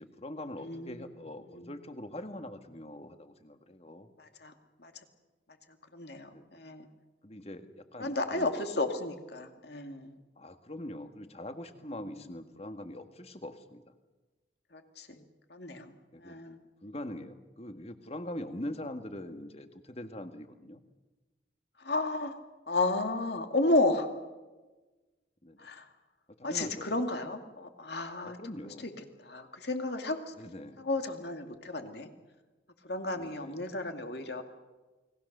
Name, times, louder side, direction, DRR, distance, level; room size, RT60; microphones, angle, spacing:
voice 1, 0.0-4.1 6.3-6.5 7.2-8.5 10.4-13.9 16.1-16.4 16.8-20.8 25.4-25.7 26.4-27.0 28.2-28.9 30.4-30.8 33.1-33.6, left 1 dB, 35° left, 8 dB, 1.7 m, -43 dB
voice 2, 0.6-1.0 1.5-1.7 4.2-4.5 4.8-4.9 5.9-6.9 8.0-10.2 11.9-12.0 14.7-15.2 15.5-15.9 16.2-16.6 21.8-22.4 22.7-24.1 25.6-25.8 26.4-28.4 29.2-30.3 30.8-32.1 32.8-34.4, left 2 dB, 60° left, 5 dB, 2.4 m, -32 dB
29.5 x 21.0 x 6.8 m, 1.2 s
head